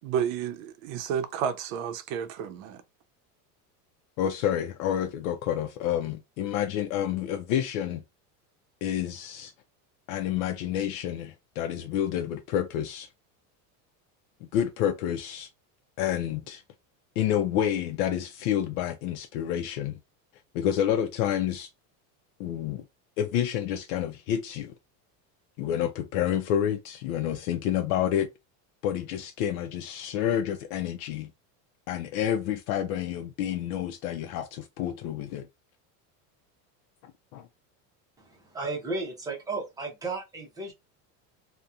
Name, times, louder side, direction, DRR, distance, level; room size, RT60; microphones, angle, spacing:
voice 1, 0.0-2.8, right 8 dB, 75° right, 0.6 m, -31 dB
voice 2, 4.2-8.0 8.8-9.5 10.1-13.1 14.5-15.5 16.0-16.6 17.2-20.0 20.5-21.7 22.4-22.8 23.2-24.7 25.6-28.3 28.8-31.3 31.9-35.5 37.0-37.5, left 10 dB, 90° left, 0.5 m, -29 dB
voice 3, 38.2-40.7, right 3 dB, 10° right, 0.6 m, -34 dB
2.8 x 2.1 x 2.3 m
cardioid pair, 170°, 41 cm